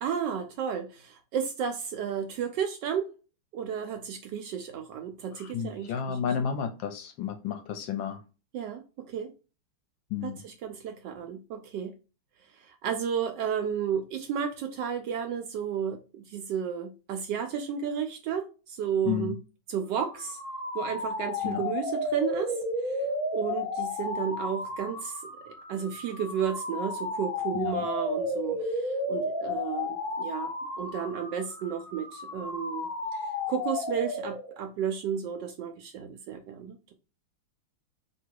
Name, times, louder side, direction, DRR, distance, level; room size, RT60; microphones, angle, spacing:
voice 1, 0.0-3.1 3.5-6.2 8.5-9.3 10.2-11.9 12.6-19.4 19.7-20.4 20.7-22.6 22.8-22.9 23.3-25.1 25.7-36.9, right 8 dB, 75° right, 1.0 m, -33 dB
voice 2, 5.4-8.2 10.1-10.4 19.0-19.3 21.4-21.6 27.5-27.8, left 8 dB, 75° left, 1.2 m, -32 dB
sound 1, 19.9-34.6, left 2 dB, 50° left, 1.0 m, -33 dB
2.9 x 2.8 x 4.5 m
omnidirectional pair, 2.3 m